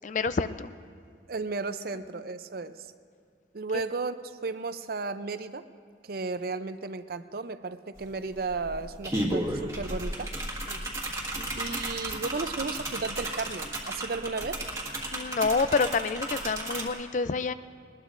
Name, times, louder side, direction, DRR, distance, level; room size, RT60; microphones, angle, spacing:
voice 1, 0.0-0.7 10.7-11.0 11.4-11.5 15.1-17.5, left 4 dB, 40° left, 13 dB, 0.4 m, -28 dB
voice 2, 1.3-2.9 3.5-5.6 6.0-10.3 11.5-14.6, right 4 dB, 50° right, 11 dB, 0.5 m, -34 dB
sound 1, 8.0-8.1 8.4-16.9, right 1 dB, 15° right, 1.7 m, -34 dB
21.0 x 20.0 x 2.6 m, 2.2 s
head